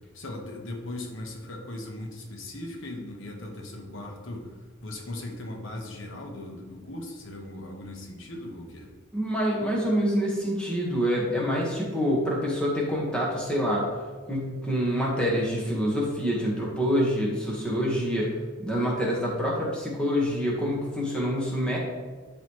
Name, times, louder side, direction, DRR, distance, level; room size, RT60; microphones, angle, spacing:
voice 1, 0.1-4.5 4.8-8.9, left 1 dB, 85° left, 1 dB, 1.2 m, -38 dB
voice 2, 9.1-13.8 14.3-18.3 18.6-21.8, equal, 5° left, -5 dB, 1.5 m, -26 dB
11.5 x 4.1 x 3.2 m, 1.4 s
head